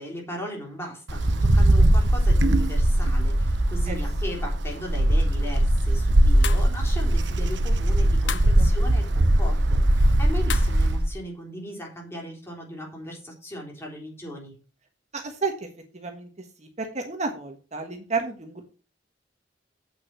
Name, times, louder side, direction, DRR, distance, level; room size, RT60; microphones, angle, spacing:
voice 1, 0.0-14.6, equal, 15° left, -1 dB, 3.8 m, -37 dB
Wind, 1.1-11.1, right 1 dB, 80° right, 1.0 m, -20 dB
sound 1, 6.4-6.7 8.3-8.6 10.5-10.8, left 8 dB, 80° left, 0.9 m, -32 dB
voice 2, 8.3-8.7 15.1-15.7 15.9-16.3 16.6-18.6, right 4 dB, 40° right, 4 dB, 1.4 m, -32 dB
8.4 x 6.0 x 6.1 m, 0.35 s
head